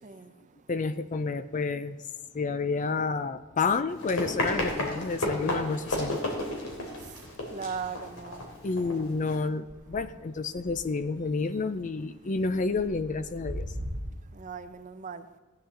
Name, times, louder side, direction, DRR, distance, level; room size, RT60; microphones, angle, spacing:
voice 1, 0.7-2.0 2.3-6.2 8.6-13.7, left 4 dB, 35° left, 13 dB, 0.4 m, -30 dB
sound 1, 1.4-2.0 2.3-14.0, equal, 15° right, 2.0 m, -46 dB
Run, 3.9-9.4, left 1 dB, 85° left, 3.0 m, -33 dB
voice 2, 7.5-8.5 14.4-15.3, right 6 dB, 35° right, 10 dB, 0.6 m, -38 dB
16.0 x 9.6 x 3.8 m, 1.3 s
head